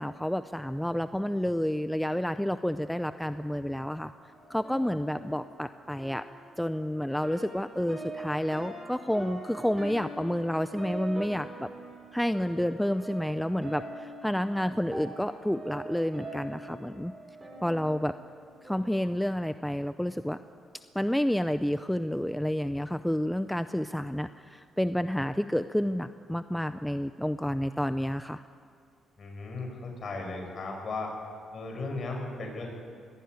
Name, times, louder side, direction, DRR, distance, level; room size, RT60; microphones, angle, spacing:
voice 1, 0.0-4.1 4.5-6.2 6.6-11.7 12.1-17.1 17.6-18.1 18.6-20.4 20.9-28.4, equal, 5° left, 11 dB, 0.6 m, -30 dB
sound 1, 4.2-19.1, right 1 dB, 20° right, 7.0 m, -43 dB
voice 2, 29.2-31.1 31.5-32.7, left 3 dB, 45° left, 1 dB, 6.2 m, -36 dB
22.0 x 15.0 x 9.5 m, 2.2 s
cardioid pair, 90°, 0 cm